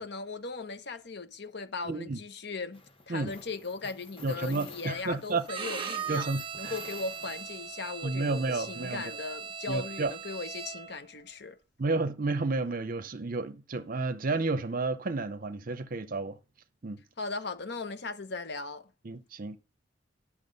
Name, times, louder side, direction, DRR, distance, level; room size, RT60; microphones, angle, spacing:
voice 1, 0.0-2.8 3.1-6.3 6.6-11.6 17.2-18.9, left 3 dB, 60° left, 1.0 m, -38 dB
voice 2, 1.8-2.2 3.1-3.3 4.2-5.4 6.1-6.7 8.0-9.1 9.7-10.1 11.8-16.4 16.8-17.0 19.0-19.6, right 3 dB, 45° right, 0.7 m, -31 dB
sound 1, 2.7-7.9, left 3 dB, 30° left, 1.3 m, -50 dB
Bowed string instrument, 5.5-11.0, right 7 dB, 30° right, 1.6 m, -39 dB
11.5 x 6.1 x 5.3 m
head